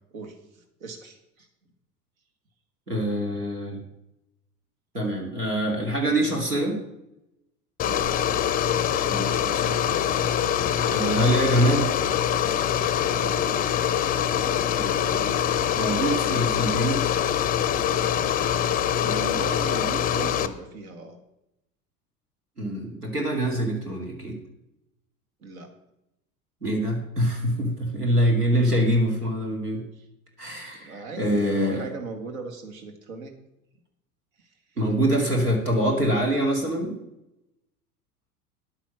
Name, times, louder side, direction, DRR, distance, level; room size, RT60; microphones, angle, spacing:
voice 1, 0.1-1.5 7.9-8.1 13.1-13.5 19.0-21.2 25.4-25.7 28.7-28.8 29.1-29.2 29.9-30.1 30.7-33.3 34.4-34.5, right 3 dB, 65° right, 6 dB, 1.8 m, -38 dB
voice 2, 2.9-3.8 4.9-6.8 9.1-9.8 10.9-12.0 14.5-15.4 15.8-17.0 22.6-24.4 26.6-29.8 30.4-31.9 34.8-37.0, right 1 dB, 85° right, 1 dB, 2.4 m, -25 dB
sound 1, 7.8-20.5, left 9 dB, 20° left, 0.6 m, -24 dB
10.5 x 8.9 x 6.0 m, 0.86 s
figure-of-eight pair, 80°, 45 cm